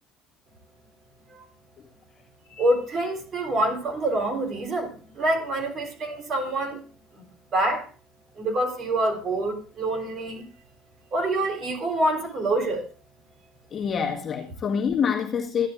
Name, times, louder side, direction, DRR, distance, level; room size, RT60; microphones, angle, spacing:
voice 1, 2.5-6.8 7.1-7.2 7.5-7.9 8.4-10.5 11.1-12.9, right 1 dB, 35° right, 4.1 m, -26 dB
voice 2, 13.7-15.7, left 7 dB, 30° left, 1.8 m, -26 dB
15.0 x 11.0 x 2.6 m
cardioid pair, 130°, 0 cm